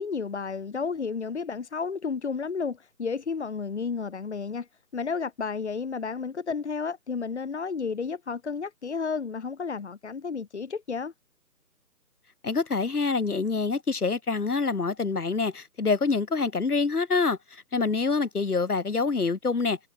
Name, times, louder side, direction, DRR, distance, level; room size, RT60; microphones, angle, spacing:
voice 1, 0.0-4.7 4.9-11.1, left 5 dB, 40° left, 2.5 m, -32 dB
voice 2, 12.4-19.8, left 4 dB, 60° left, 4.3 m, -26 dB
figure-of-eight pair, 165°, 50 cm